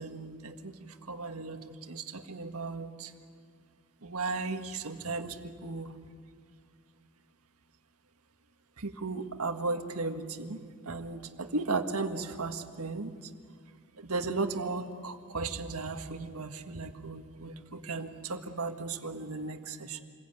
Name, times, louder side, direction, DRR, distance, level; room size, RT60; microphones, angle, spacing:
voice 1, 0.0-3.1 4.0-5.9 8.8-10.6 10.8-13.1 14.0-20.0, right 3 dB, 85° right, 6 dB, 1.7 m, -36 dB
27.5 x 22.0 x 9.3 m, 2.2 s
head